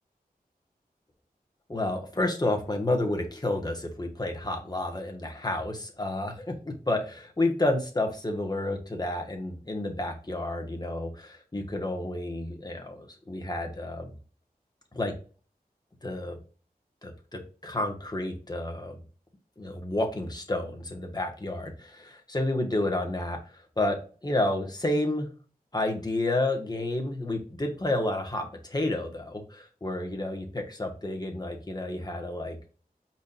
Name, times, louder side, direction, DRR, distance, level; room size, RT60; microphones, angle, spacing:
voice 1, 1.7-14.1 14.9-15.1 16.0-16.4 17.0-19.0 19.6-25.3 25.7-32.6, left 1 dB, 25° left, 2 dB, 1.3 m, -30 dB
4.9 x 4.3 x 2.4 m, 0.37 s
wide cardioid pair, 50°, 16 cm